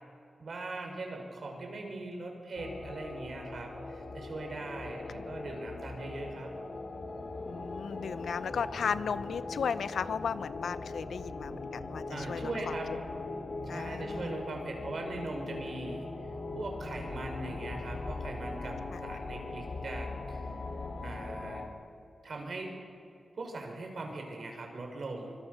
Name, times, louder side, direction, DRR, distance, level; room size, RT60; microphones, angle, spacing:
voice 1, 0.4-6.5 8.4-9.1 12.1-12.9 13.6-16.1 16.5-20.4 21.0-21.6 22.2-22.7 23.3-25.4, right 2 dB, 65° right, 2 dB, 6.1 m, -40 dB
sound 1, 2.5-21.7, left 3 dB, 60° left, 3.3 m, -40 dB
voice 2, 7.5-12.7 13.7-14.3 18.9-19.0, left 6 dB, 90° left, 14 dB, 0.8 m, -35 dB
25.0 x 24.5 x 6.9 m, 2.5 s
cardioid pair, 65°, 0 cm